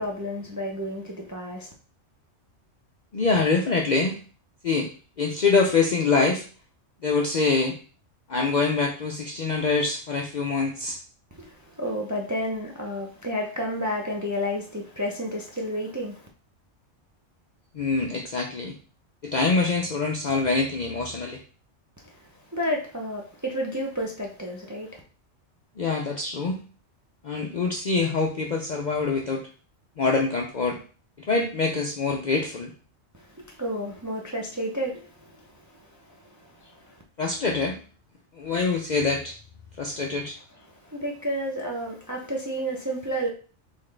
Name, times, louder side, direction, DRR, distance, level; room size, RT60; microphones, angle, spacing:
voice 1, 0.0-1.7 11.3-16.3 22.1-22.2 22.5-25.0 33.2-35.4 36.1-36.9 39.8-40.0 40.7-43.3, equal, 25° right, 0.4 m, -31 dB
voice 2, 3.1-4.2 4.6-4.9 5.2-6.4 7.0-7.7 8.3-11.0 17.7-18.7 19.2-21.4 25.8-26.6 27.2-29.4 30.0-30.8 31.3-32.7 37.2-37.8 38.4-39.3 39.8-40.4, left 4 dB, 55° left, 0.5 m, -24 dB
4.0 x 3.6 x 3.2 m
omnidirectional pair, 1.3 m